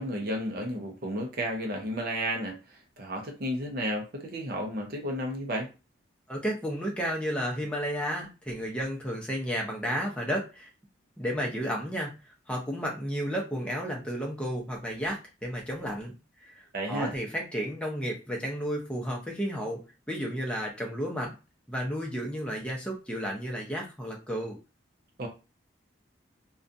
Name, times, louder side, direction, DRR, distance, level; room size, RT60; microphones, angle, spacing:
voice 1, 0.0-5.7 16.7-17.1 25.2-25.3, equal, 50° right, 1 dB, 0.5 m, -32 dB
voice 2, 6.3-10.7 11.2-12.1 12.5-16.1 16.4-19.8 20.1-21.3 21.7-24.6, equal, 5° left, -1 dB, 0.6 m, -32 dB
2.5 x 2.2 x 2.5 m, 0.30 s
head